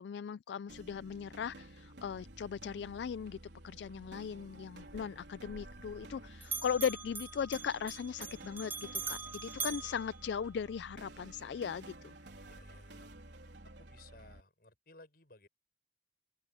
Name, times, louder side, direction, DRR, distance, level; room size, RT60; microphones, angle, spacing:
voice 1, 0.0-3.4 3.6-12.1, left 7 dB, 75° left, 0.3 m, -38 dB
sound 1, 0.7-14.4, right 1 dB, 80° right, 3.8 m, -52 dB
Bell, 4.8-6.2 6.4-10.9, right 4 dB, 10° right, 0.6 m, -43 dB
voice 2, 12.4-13.1 13.8-15.5, left 2 dB, 55° left, 6.3 m, -59 dB
head